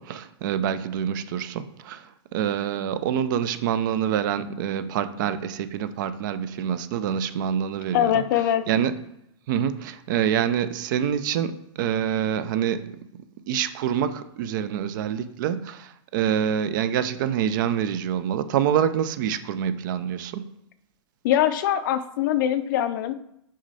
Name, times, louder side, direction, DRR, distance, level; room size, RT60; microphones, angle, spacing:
voice 1, 0.0-8.2 8.7-9.0 9.5-13.0 13.5-20.5, right 9 dB, 40° right, 0.5 m, -26 dB
voice 2, 7.9-8.6 21.2-23.1, left 11 dB, 40° left, 0.5 m, -22 dB
6.2 x 5.3 x 4.1 m
hypercardioid pair, 150°, 16 cm